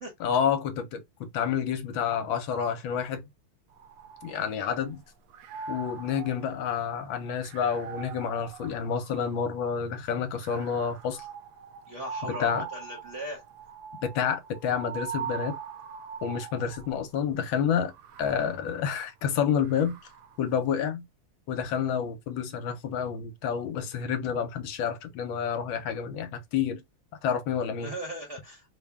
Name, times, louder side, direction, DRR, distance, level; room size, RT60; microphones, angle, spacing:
voice 1, 0.2-3.2 4.2-5.0 5.7-11.2 12.2-12.6 14.0-15.5 16.2-17.9 18.2-20.0 20.4-21.0 21.5-26.8 27.2-27.9, left 7 dB, 70° left, 1.4 m, -29 dB
sound 1, 3.7-4.9 5.3-9.7 10.4-17.1 17.8-20.4, right 7 dB, 85° right, 0.9 m, -42 dB
voice 2, 11.9-13.4 27.8-28.7, right 1 dB, 50° right, 0.9 m, -38 dB
3.6 x 2.2 x 3.4 m
omnidirectional pair, 2.3 m